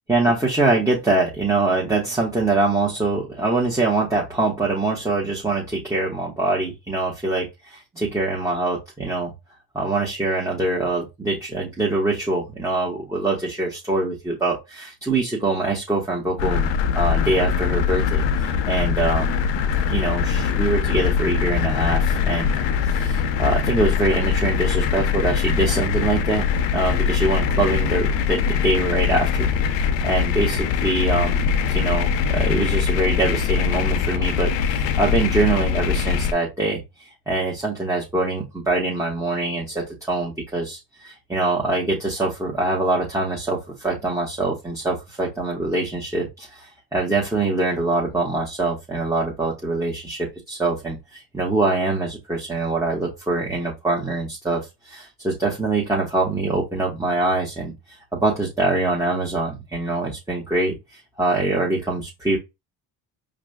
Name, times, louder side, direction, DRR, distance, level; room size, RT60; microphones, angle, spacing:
voice 1, 0.1-9.3 9.7-19.4 19.8-26.5 26.7-29.5 29.8-62.4, right 2 dB, 5° right, -4 dB, 1.2 m, -24 dB
sound 1, 16.4-36.3, left 7 dB, 70° left, 0.6 m, -22 dB
4.9 x 2.4 x 2.2 m, 0.22 s
supercardioid pair, 70°, 46 cm